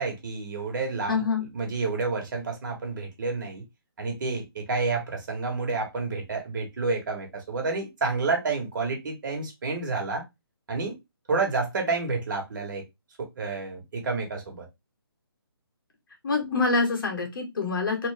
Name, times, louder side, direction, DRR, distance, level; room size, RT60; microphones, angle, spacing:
voice 1, 0.0-1.2 1.5-3.6 4.0-10.2 10.7-11.0 11.3-12.8 13.2-14.7, right 4 dB, 50° right, 1.6 m, -29 dB
voice 2, 1.1-1.5 16.2-18.1, left 4 dB, 55° left, 1.7 m, -26 dB
3.4 x 2.8 x 3.4 m
hypercardioid pair, 155°, 13 cm